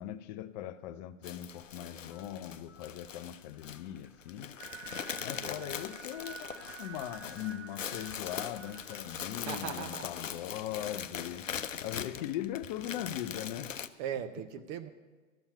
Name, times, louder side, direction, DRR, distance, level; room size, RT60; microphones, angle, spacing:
voice 1, 0.0-4.6 5.2-11.5 11.8-13.8, left 12 dB, 35° left, 0.5 m, -40 dB
sound 1, 1.2-13.9, left 8 dB, 80° left, 0.7 m, -41 dB
sound 2, 2.1-9.5, left 3 dB, 5° right, 1.8 m, -66 dB
sound 3, 4.6-9.7, right 7 dB, 45° right, 1.5 m, -49 dB
voice 2, 5.3-5.8 9.4-10.1 14.0-14.9, right 9 dB, 25° right, 0.4 m, -39 dB
13.0 x 7.1 x 8.9 m
figure-of-eight pair, 100°, 38 cm